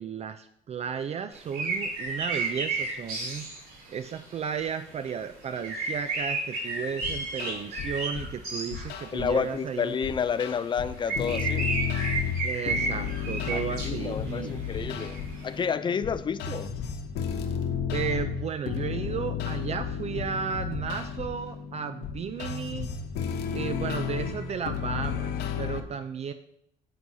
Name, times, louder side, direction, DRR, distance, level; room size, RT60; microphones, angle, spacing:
voice 1, 0.0-3.5 3.9-9.9 12.4-14.6 17.9-22.9 23.5-26.3, right 7 dB, 40° right, 10 dB, 0.5 m, -34 dB
sound 1, 1.4-4.7 5.0-5.1 5.5-9.2 9.8-9.9 10.6-10.7 11.0-15.6, right 3 dB, 70° right, 3.6 m, -32 dB
sound 2, 7.0-8.3 8.7-9.4 10.0-25.8, left 7 dB, 85° left, 0.9 m, -33 dB
voice 2, 9.1-11.7 13.5-16.7, left 6 dB, 30° left, 14 dB, 0.4 m, -30 dB
9.6 x 7.7 x 2.7 m, 0.74 s
cardioid pair, 110°, 17 cm